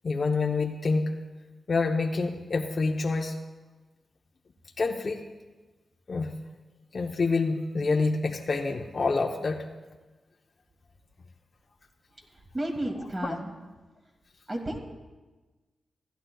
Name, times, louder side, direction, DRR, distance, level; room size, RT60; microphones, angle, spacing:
voice 1, 0.0-1.2 1.7-3.4 4.8-5.3 6.1-6.4 6.9-9.7 13.0-13.4, left 3 dB, 55° left, 1 dB, 0.7 m, -27 dB
voice 2, 12.5-13.5 14.5-14.8, right 1 dB, 30° right, 2 dB, 2.3 m, -32 dB
15.5 x 11.5 x 2.3 m, 1.2 s
cardioid pair, 55°, 0 cm